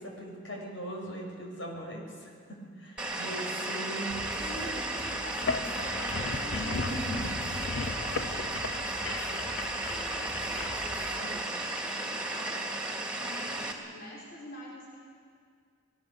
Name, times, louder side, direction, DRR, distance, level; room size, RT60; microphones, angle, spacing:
voice 1, 0.0-4.4 4.6-4.8 6.5-7.3 11.2-11.4, right 1 dB, 90° left, 0 dB, 6.7 m, -40 dB
sound 1, 3.0-13.7, right 2 dB, 5° right, 2.6 m, -34 dB
voice 2, 3.2-3.7 4.3-7.2 7.6-8.9 9.2-15.0, equal, 55° left, -4 dB, 5.1 m, -46 dB
sound 2, 4.1-11.1, right 1 dB, 35° left, 3.6 m, -46 dB
sound 3, 5.3-10.7, left 4 dB, 70° left, 0.7 m, -36 dB
26.5 x 21.5 x 7.0 m, 2.1 s
head